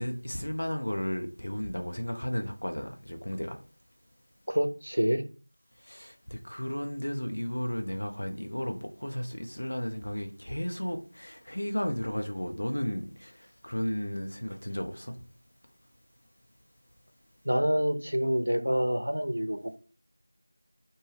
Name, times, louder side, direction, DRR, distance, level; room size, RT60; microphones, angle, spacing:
voice 1, 0.0-3.6 5.8-13.4 13.6-15.2, equal, 55° left, 0.5 m, -34 dB
voice 2, 4.5-5.2 17.4-19.8, equal, 90° right, 0.5 m, -27 dB
2.8 x 2.1 x 3.4 m
figure-of-eight pair, 180°, 0 cm